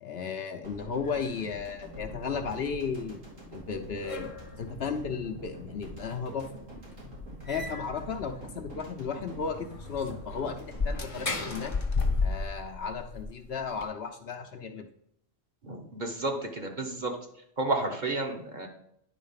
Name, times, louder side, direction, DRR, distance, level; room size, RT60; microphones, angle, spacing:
voice 1, 0.0-3.2 3.5-6.5 7.5-11.8 12.2-14.9, left 5 dB, 60° left, 4 dB, 0.9 m, -35 dB
sound 1, 0.6-12.8 13.1-13.3, equal, 85° right, 3.0 m, -45 dB
sound 2, 1.0-1.6 2.0-2.1 3.4-3.5 3.7-4.7 5.4-5.5 5.9-6.0 6.5-6.6 6.9-7.0 7.4-8.0 8.5-8.6 8.8-8.9 9.4-13.9, left 4 dB, 30° left, 0.8 m, -33 dB
voice 2, 15.6-17.1 17.6-18.7, right 2 dB, 40° right, 2 dB, 1.1 m, -31 dB
10.0 x 4.1 x 5.7 m, 0.73 s
omnidirectional pair, 1.3 m